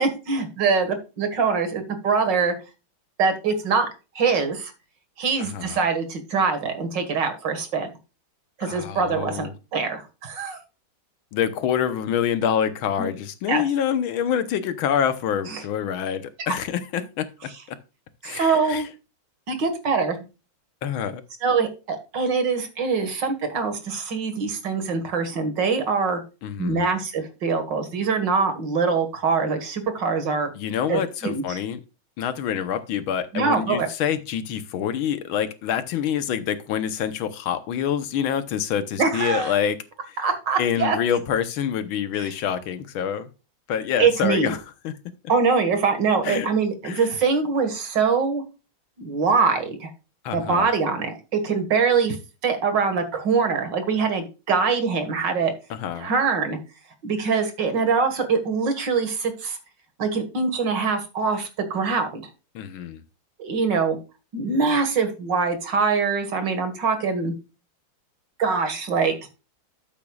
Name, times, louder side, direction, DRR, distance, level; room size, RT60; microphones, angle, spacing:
voice 1, 0.0-2.5 3.2-3.9 4.2-4.7 5.2-7.9 8.6-10.6 13.0-13.1 13.5-13.6 15.5-15.6 16.5-16.6 18.2-18.9 19.5-20.2 21.4-26.2 26.6-30.5 30.9-31.6 33.3-33.9 39.0-39.6 40.2-41.0 42.2-42.3 44.0-44.5 45.3-48.4 49.0-49.9 50.3-52.2 52.4-55.5 56.0-56.6 57.0-59.6 60.0-62.2 63.4-64.0 64.3-67.3 68.4-69.1, right 5 dB, 60° right, 7 dB, 2.3 m, -23 dB
voice 2, 5.4-5.8 8.6-9.5 11.3-17.3 17.7-17.8 18.2-18.8 20.8-21.2 26.4-26.9 30.6-31.8 32.2-39.8 40.6-43.3 43.7-44.9 46.2-46.5 46.8-47.1 50.3-50.7 55.7-56.1 62.6-63.0, left 8 dB, 85° left, 11 dB, 1.7 m, -26 dB
12.0 x 8.3 x 2.4 m, 0.30 s
omnidirectional pair, 2.2 m